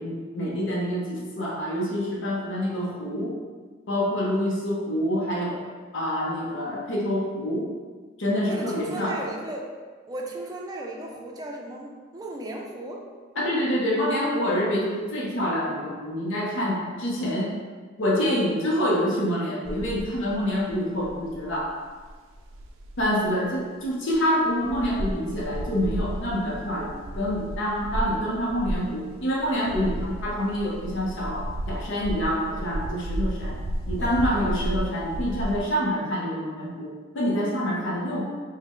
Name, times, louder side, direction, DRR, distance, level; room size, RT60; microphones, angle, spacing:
voice 1, 0.0-3.3 3.9-5.6 5.9-7.7 8.2-9.2 13.4-17.5 18.0-21.7 23.0-33.6 33.9-38.3, equal, 70° left, -4 dB, 0.7 m, -26 dB
voice 2, 8.5-9.7 10.1-13.0 34.0-34.3, right 1 dB, 20° right, -1 dB, 0.4 m, -36 dB
sound 1, 19.6-23.3 23.8-23.9 24.1-24.2 24.5-35.6, right 1 dB, 85° right, 0.4 m, -33 dB
3.7 x 2.1 x 3.5 m, 1.5 s
head